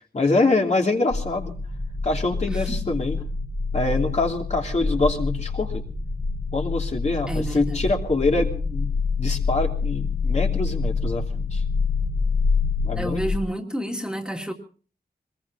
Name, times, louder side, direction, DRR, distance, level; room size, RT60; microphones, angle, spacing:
voice 1, 0.1-1.5 2.0-3.2 3.7-5.8 6.5-8.9 9.2-11.6 12.8-13.2, left 2 dB, 40° left, 1 dB, 2.8 m, -25 dB
sound 1, 1.1-13.4, left 4 dB, 20° left, 1.4 m, -26 dB
voice 2, 2.5-2.9 7.3-7.8 12.9-14.5, equal, 5° right, 2 dB, 2.4 m, -30 dB
24.5 x 21.0 x 2.7 m, 0.39 s
wide cardioid pair, 120°, 17 cm